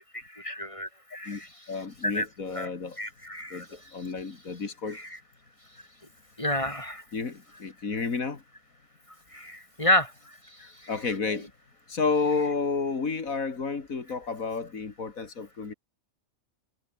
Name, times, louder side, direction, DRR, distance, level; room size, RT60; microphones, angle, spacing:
voice 1, 0.0-1.7 2.0-2.3 2.5-2.7 3.0-3.7 4.9-5.2 6.4-7.0 9.3-10.9, left 1 dB, 25° left, 3.5 m, -30 dB
voice 2, 1.7-3.0 3.5-5.0 7.1-8.4 10.6-11.5 11.9-15.7, left 4 dB, 85° left, 2.9 m, -31 dB
omnidirectional pair, 1.4 m